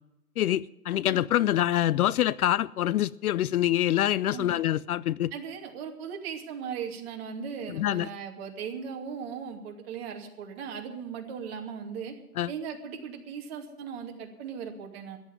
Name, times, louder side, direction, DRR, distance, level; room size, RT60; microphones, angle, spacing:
voice 1, 0.4-5.3 7.7-8.1 12.4-12.5, left 12 dB, 65° left, 21 dB, 0.5 m, -25 dB
voice 2, 5.3-12.1 12.5-15.2, right 7 dB, 40° right, 2 dB, 2.6 m, -38 dB
14.0 x 9.6 x 9.4 m, 0.93 s
hypercardioid pair, 150°, 47 cm